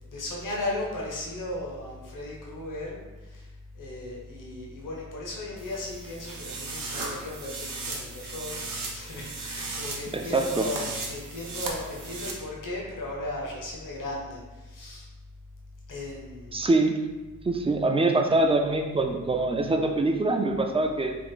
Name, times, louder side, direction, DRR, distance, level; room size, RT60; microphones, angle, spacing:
voice 1, 0.1-3.5 3.7-15.1 15.9-16.6, left 2 dB, 70° left, -3 dB, 0.9 m, -36 dB
sound 1, 5.6-12.3, right 3 dB, 85° right, 0.7 m, -36 dB
voice 2, 10.1-10.7 16.5-17.0 17.4-21.2, right 2 dB, 20° right, 4 dB, 0.3 m, -24 dB
3.6 x 2.5 x 3.6 m, 1.1 s
wide cardioid pair, 100°, 33 cm